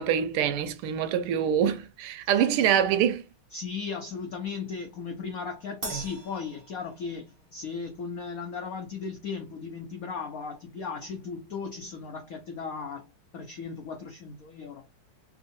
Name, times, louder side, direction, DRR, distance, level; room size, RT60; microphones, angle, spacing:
voice 1, 0.0-3.2, right 9 dB, 90° right, 1.5 m, -25 dB
voice 2, 3.5-14.8, left 5 dB, 90° left, 0.7 m, -36 dB
Crash cymbal, 5.8-7.5, right 2 dB, 40° right, 0.9 m, -41 dB
3.5 x 2.7 x 2.5 m
omnidirectional pair, 2.4 m